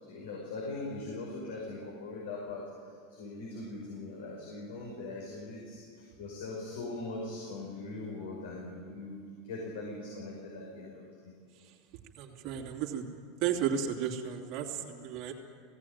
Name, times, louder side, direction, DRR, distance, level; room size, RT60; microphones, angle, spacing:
voice 1, 0.0-11.3 14.7-14.8, left 2 dB, 75° left, -3 dB, 5.8 m, -41 dB
voice 2, 12.2-13.0 13.4-15.3, right 8 dB, 55° right, 1 dB, 2.8 m, -33 dB
17.5 x 17.5 x 9.5 m, 2.1 s
hypercardioid pair, 90°, 0 cm